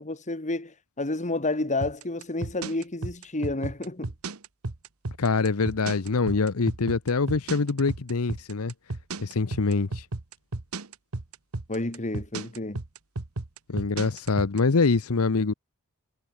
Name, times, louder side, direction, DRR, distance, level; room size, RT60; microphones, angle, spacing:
voice 1, 0.0-4.1 11.7-12.8, left 2 dB, 35° left, 1.9 m, -30 dB
sound 1, 1.8-14.6, right 2 dB, 75° right, 1.3 m, -33 dB
voice 2, 5.2-8.7 9.2-10.1 13.7-15.5, left 4 dB, 75° left, 0.8 m, -24 dB
head